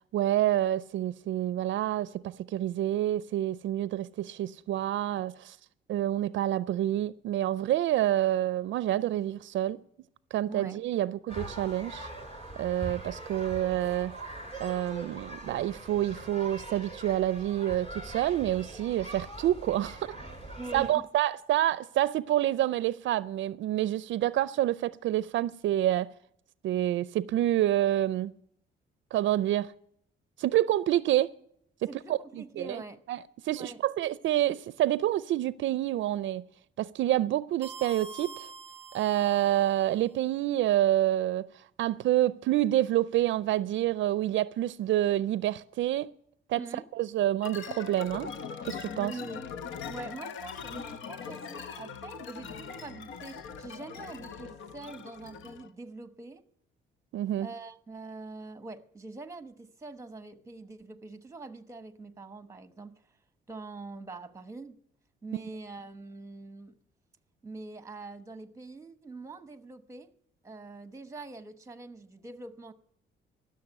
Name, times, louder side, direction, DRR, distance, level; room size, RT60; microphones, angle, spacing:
voice 1, 0.1-5.6 5.9-9.8 10.3-12.1 12.6-14.1 14.6-20.2 20.7-26.1 26.6-28.3 29.1-29.7 30.4-31.3 31.8-32.8 33.1-36.4 36.8-38.5 38.9-46.1 46.5-46.6 46.9-48.3 48.6-49.1 57.1-57.5, right 13 dB, 70° right, 0.4 m, -28 dB
voice 2, 10.5-10.8 20.6-21.0 31.9-33.0 33.6-33.8 46.6-46.9 48.9-49.5 49.9-56.4 57.4-63.0 63.5-64.8 65.2-66.8 67.4-70.1 70.4-72.7, right 3 dB, 15° right, 1.0 m, -44 dB
sound 1, 11.3-20.9, right 2 dB, 30° left, 3.3 m, -42 dB
sound 2, 37.6-40.0, right 3 dB, 30° right, 0.7 m, -45 dB
sound 3, 47.4-55.7, left 6 dB, 75° left, 0.9 m, -41 dB
14.5 x 6.6 x 9.9 m
cardioid pair, 90°, 20 cm